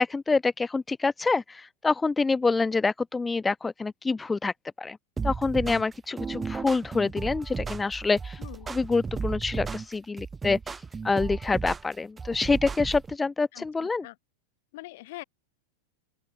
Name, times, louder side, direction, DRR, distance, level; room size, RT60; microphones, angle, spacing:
voice 1, 0.0-5.0 5.2-8.4 8.7-14.0, left 4 dB, 10° left, 0.5 m, -26 dB
sound 1, 5.2-13.1, right 5 dB, 15° right, 1.5 m, -34 dB
voice 2, 8.4-8.7 13.5-14.2 14.7-15.2, left 19 dB, 50° left, 3.1 m, -43 dB
open air
figure-of-eight pair, 90°, 0 cm